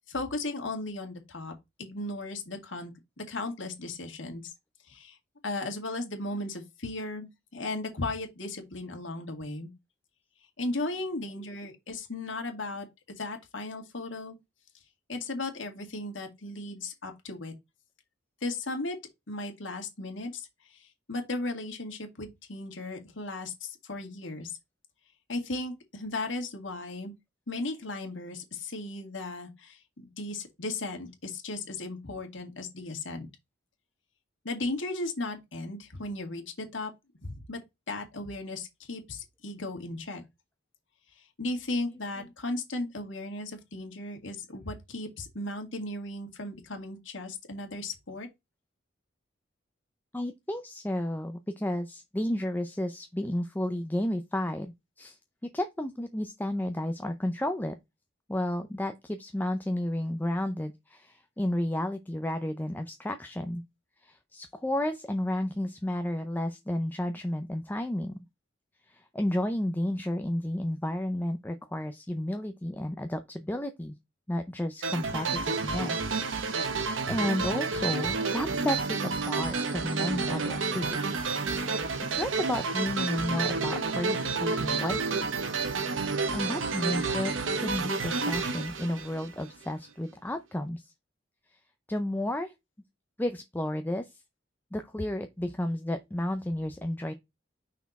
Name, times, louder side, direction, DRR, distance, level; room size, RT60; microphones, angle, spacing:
voice 1, 0.1-1.5 1.8-4.5 4.9-5.2 5.4-9.7 10.6-12.9 13.2-14.4 15.1-17.5 18.4-19.0 19.3-24.6 25.3-27.1 27.5-33.3 34.4-36.9 37.2-37.6 37.9-40.2 41.4-48.3, left 2 dB, 75° left, 2.0 m, -36 dB
voice 2, 50.1-57.7 58.3-63.6 64.0-68.2 68.9-74.0 74.3-76.1 77.1-81.7 82.1-85.3 86.3-90.9 91.9-92.5 93.2-94.1 94.7-97.1, left 1 dB, 10° left, 0.5 m, -32 dB
sound 1, 74.8-89.7, right 4 dB, 85° right, 1.0 m, -30 dB
5.8 x 4.2 x 4.1 m
head